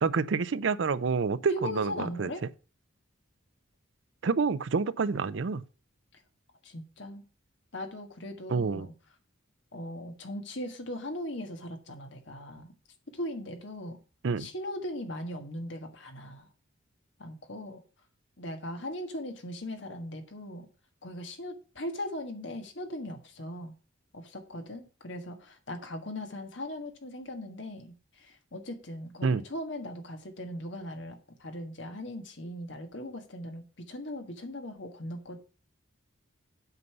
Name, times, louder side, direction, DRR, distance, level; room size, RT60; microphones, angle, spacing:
voice 1, 0.0-2.3 4.2-5.6 8.5-8.9 14.2-14.5 29.2-29.4, right 5 dB, 60° right, 0.5 m, -28 dB
voice 2, 1.5-2.4 6.1-6.2 6.6-7.2 7.7-8.9 9.7-12.7 13.1-14.0 14.4-16.5 17.2-17.8 18.4-20.7 21.0-23.7 24.1-35.4, left 1 dB, 60° left, 1.6 m, -39 dB
8.1 x 5.4 x 6.8 m
head